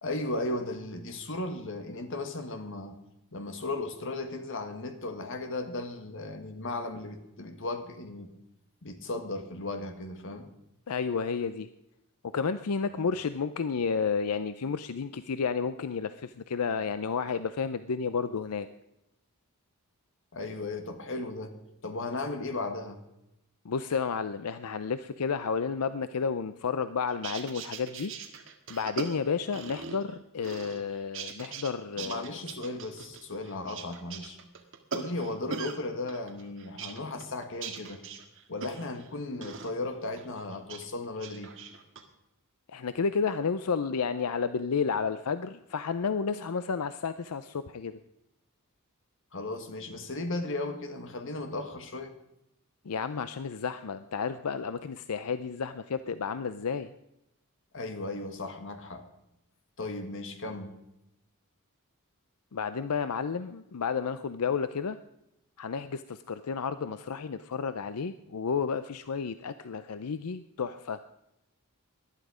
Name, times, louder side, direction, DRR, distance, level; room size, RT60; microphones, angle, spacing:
voice 1, 0.0-3.0 3.3-8.3 8.8-10.5 20.3-21.5 21.8-23.0 32.0-34.4 34.9-38.0 38.5-41.5 49.3-52.1 57.7-59.0 59.8-60.8, left 2 dB, 60° left, 7 dB, 1.7 m, -36 dB
voice 2, 10.9-11.7 12.3-18.7 23.6-28.1 28.7-32.4 42.7-48.0 52.8-56.9 62.5-65.0 65.6-71.0, left 5 dB, 90° left, 12 dB, 0.6 m, -31 dB
sound 1, 27.1-30.1 30.4-31.7 32.0-35.8 36.1-39.1 39.4-39.7 40.2-40.8 41.2-42.0, right 5 dB, 60° right, 1.9 m, -41 dB
19.0 x 11.5 x 5.0 m, 0.88 s
head